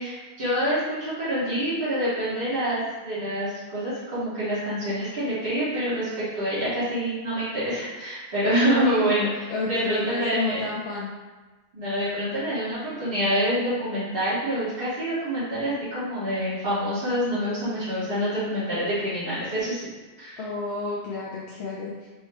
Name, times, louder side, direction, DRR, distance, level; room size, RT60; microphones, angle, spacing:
voice 1, 0.0-10.6 11.7-19.9 20.2-20.4, equal, 60° right, -14 dB, 1.5 m, -26 dB
voice 2, 9.5-11.1 20.4-22.1, left 3 dB, 85° left, -5 dB, 0.9 m, -30 dB
4.3 x 2.1 x 3.3 m, 1.2 s
omnidirectional pair, 1.1 m